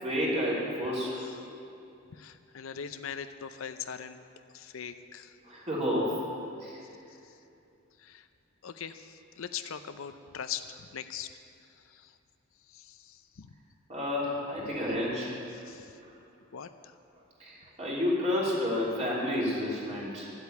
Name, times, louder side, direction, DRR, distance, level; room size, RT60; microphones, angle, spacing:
voice 1, 0.0-1.1 5.4-6.1 6.6-6.8 13.9-15.3 17.4-20.3, left 1 dB, 35° right, -5 dB, 3.1 m, -30 dB
voice 2, 1.2-1.5 2.1-4.2 4.5-5.4 7.2-7.3 8.0-8.3 8.6-11.3 11.6-12.2 12.7-13.5 15.5-16.0 16.5-16.9, left 8 dB, 75° left, 10 dB, 0.6 m, -41 dB
11.5 x 8.2 x 8.4 m, 2.6 s
head